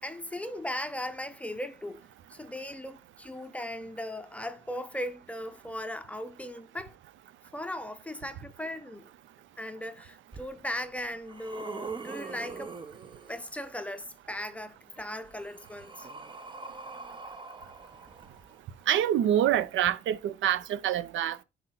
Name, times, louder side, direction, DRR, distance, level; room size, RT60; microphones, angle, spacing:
voice 1, 0.0-7.0 7.5-9.1 9.6-12.7 13.3-16.1, left 1 dB, 5° left, 0.7 m, -38 dB
sound 1, 10.3-10.4 11.0-13.7 14.9-18.8 19.8-19.9, right 4 dB, 25° right, 0.8 m, -43 dB
voice 2, 18.9-21.4, right 11 dB, 75° right, 0.6 m, -26 dB
5.8 x 4.3 x 3.9 m
cardioid pair, 90°, 20 cm